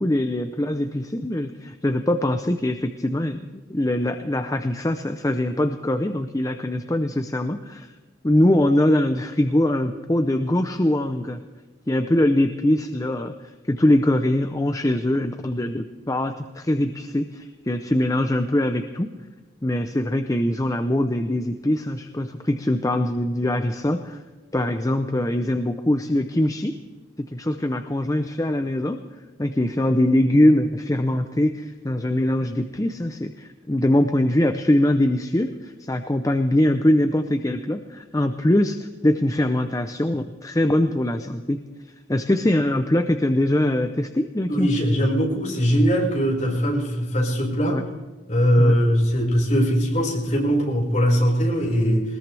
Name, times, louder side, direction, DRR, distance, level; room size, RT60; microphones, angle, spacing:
voice 1, 0.0-3.4 3.7-7.9 8.2-11.4 11.9-19.1 19.6-24.2 24.5-26.8 27.2-29.0 29.4-41.6 42.1-44.8 47.7-47.8 48.6-48.8, left 1 dB, 20° left, 7 dB, 0.6 m, -22 dB
voice 2, 44.5-47.8 48.3-52.0, equal, 40° left, -3 dB, 5.2 m, -20 dB
21.0 x 20.0 x 3.4 m, 1.3 s
head